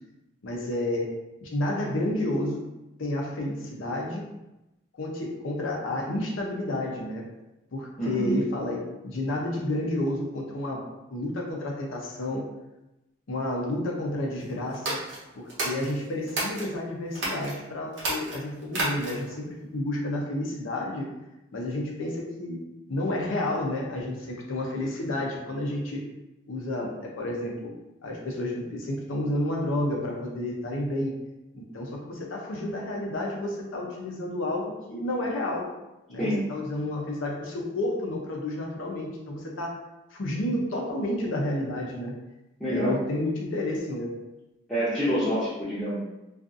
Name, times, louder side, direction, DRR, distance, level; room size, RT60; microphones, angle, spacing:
voice 1, 0.4-1.1 1.4-2.7 3.0-4.3 4.9-7.2 7.7-10.8 11.1-12.5 13.3-15.0 15.3-21.1 21.5-22.6 22.9-26.0 26.5-27.7 28.0-31.1 31.5-35.7 36.1-39.8 40.1-42.1 42.7-44.1, left 1 dB, 80° left, -1 dB, 0.6 m, -30 dB
voice 2, 8.0-8.3 36.2-36.4 42.6-42.9 44.7-46.0, equal, 5° left, -14 dB, 0.6 m, -27 dB
sound 1, 14.7-16.7 17.1-17.5 17.9-19.3, right 2 dB, 60° right, 0.7 m, -31 dB
2.4 x 2.4 x 2.5 m, 0.96 s
head